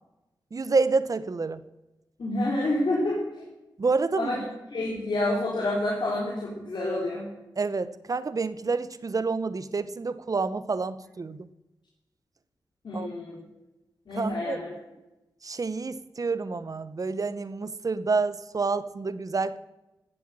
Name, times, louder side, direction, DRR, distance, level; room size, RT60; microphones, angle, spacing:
voice 1, 0.5-1.6 3.8-4.3 7.6-11.5 12.9-13.1 14.1-14.6 15.4-19.6, right 4 dB, 45° right, 15 dB, 0.8 m, -28 dB
voice 2, 2.2-3.2 4.2-4.4 4.7-7.2 12.8-13.4 14.1-14.7, left 1 dB, 70° left, -5 dB, 3.7 m, -28 dB
16.0 x 8.0 x 7.6 m, 0.99 s
cardioid pair, 70°, 8 cm